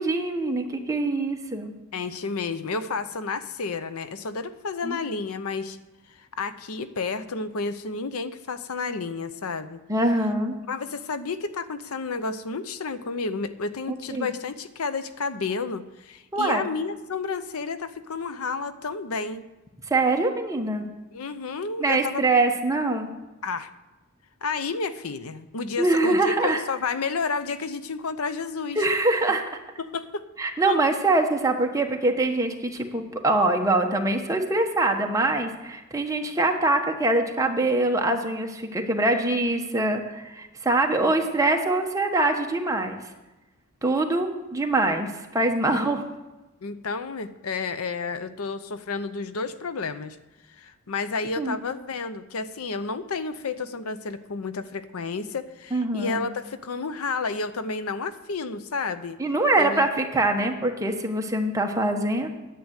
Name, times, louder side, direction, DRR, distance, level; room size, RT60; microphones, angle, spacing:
voice 1, 0.0-1.7 4.8-5.0 9.9-10.5 14.1-14.3 16.3-16.7 19.9-20.8 21.8-23.1 25.8-26.6 28.8-29.4 30.4-43.0 43.8-46.0 51.4-51.6 55.7-56.2 59.2-62.3, right 2 dB, 15° right, 3 dB, 1.1 m, -24 dB
voice 2, 1.9-5.8 6.1-9.8 10.7-19.5 21.1-22.2 23.4-23.7 24.4-28.8 29.8-30.3 30.7-30.8 45.8-46.0 46.6-50.2 50.5-59.2 59.6-59.9, left 4 dB, 75° left, 12 dB, 0.7 m, -31 dB
10.5 x 7.8 x 8.0 m, 1.1 s
head